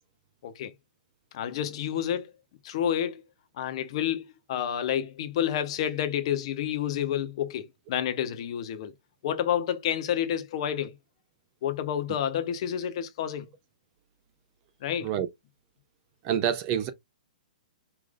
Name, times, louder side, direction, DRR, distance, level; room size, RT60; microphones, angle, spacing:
voice 1, 0.4-0.7 1.3-2.3 2.6-3.2 3.6-8.9 9.2-10.9 11.6-13.5 14.8-15.1, left 10 dB, 40° left, 0.8 m, -29 dB
voice 2, 16.2-16.9, right 9 dB, 25° right, 0.5 m, -27 dB
4.9 x 2.6 x 3.8 m
hypercardioid pair, 165°, 5 cm